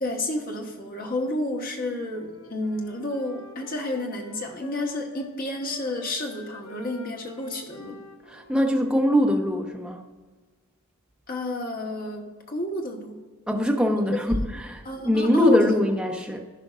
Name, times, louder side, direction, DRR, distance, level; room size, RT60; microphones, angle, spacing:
voice 1, 0.0-8.0 11.3-13.2 14.8-15.6, left 1 dB, 40° left, 2 dB, 1.2 m, -30 dB
Wind instrument woodwind instrument, 1.6-5.4 5.6-9.8, left 3 dB, 85° left, 0.8 m, -47 dB
voice 2, 8.3-10.0 13.5-16.4, left 1 dB, 5° right, 1 dB, 0.7 m, -22 dB
15.0 x 5.1 x 2.4 m, 1.4 s
head